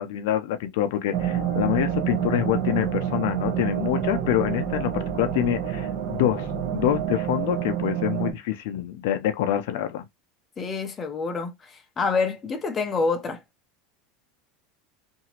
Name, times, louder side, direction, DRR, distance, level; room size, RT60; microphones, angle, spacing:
voice 1, 0.0-6.5 6.7-10.0, left 12 dB, 70° left, 0.5 m, -26 dB
sound 1, 1.1-8.3, right 9 dB, 55° right, 1.0 m, -28 dB
voice 2, 10.6-13.4, left 4 dB, 20° left, 0.6 m, -27 dB
2.9 x 2.6 x 2.8 m
supercardioid pair, 160°, 0 cm